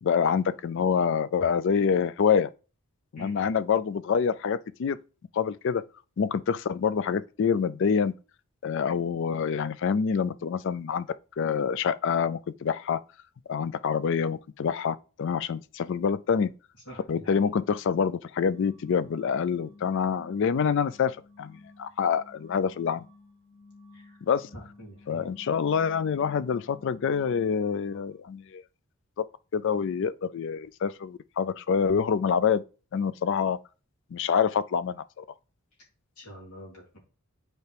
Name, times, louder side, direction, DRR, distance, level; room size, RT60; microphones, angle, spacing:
voice 1, 0.0-2.5 3.1-5.0 5.3-5.8 6.2-8.1 8.6-11.1 11.4-13.0 13.5-16.5 17.1-23.0 24.2-24.5 25.1-28.6 29.5-32.6 32.9-33.6 34.1-35.2, left 6 dB, 55° left, 0.3 m, -26 dB
voice 2, 3.1-3.5 16.9-17.5 23.9-24.2 24.5-25.3 36.2-37.0, equal, 80° left, 3.0 m, -45 dB
sound 1, 18.5-28.2, left 3 dB, 35° left, 3.3 m, -53 dB
8.1 x 4.5 x 3.4 m
head